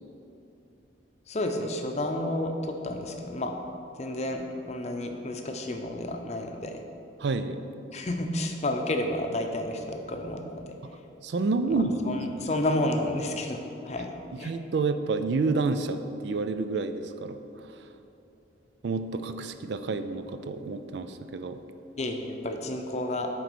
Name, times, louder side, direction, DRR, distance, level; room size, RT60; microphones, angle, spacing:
voice 1, 1.3-3.5 4.0-6.8 7.9-10.8 11.6-13.6 13.8-14.5 22.0-23.3, left 1 dB, 35° left, 4 dB, 0.6 m, -31 dB
voice 2, 7.2-7.6 11.2-12.5 14.4-17.4 18.8-21.6, right 3 dB, 60° right, 9 dB, 0.4 m, -29 dB
9.1 x 4.1 x 6.1 m, 2.8 s
head